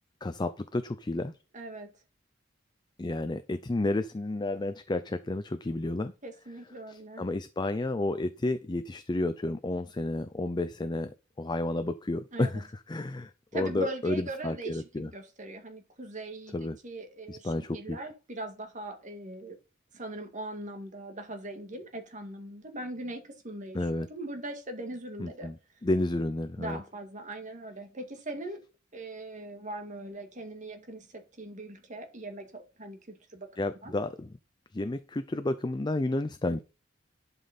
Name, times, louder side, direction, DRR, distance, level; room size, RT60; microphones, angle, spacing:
voice 1, 0.2-1.3 3.0-6.1 6.9-15.1 16.5-16.8 17.3-18.0 23.7-24.1 25.2-25.6 25.8-26.8 33.6-34.3 34.7-36.6, left 2 dB, 20° left, 0.5 m, -31 dB
voice 2, 1.5-2.0 6.2-7.3 12.3-12.6 13.5-19.6 19.9-25.5 26.6-28.6 28.9-33.5 33.8-33.9, right 2 dB, 40° right, 1.9 m, -40 dB
11.5 x 5.3 x 4.1 m
head